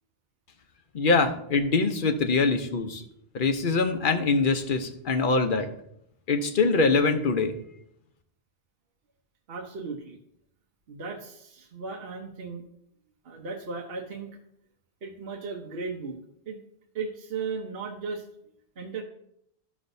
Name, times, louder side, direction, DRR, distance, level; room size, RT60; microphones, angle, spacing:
voice 1, 0.9-3.0 3.3-5.7 6.3-7.5, left 4 dB, 55° left, 7 dB, 0.9 m, -23 dB
voice 2, 9.5-10.2 10.9-12.6 13.2-14.4 15.0-16.2 16.5-16.6 16.9-18.3 18.8-19.0, right 4 dB, 65° right, 1 dB, 1.1 m, -36 dB
13.0 x 6.1 x 2.7 m, 0.75 s
omnidirectional pair, 1.1 m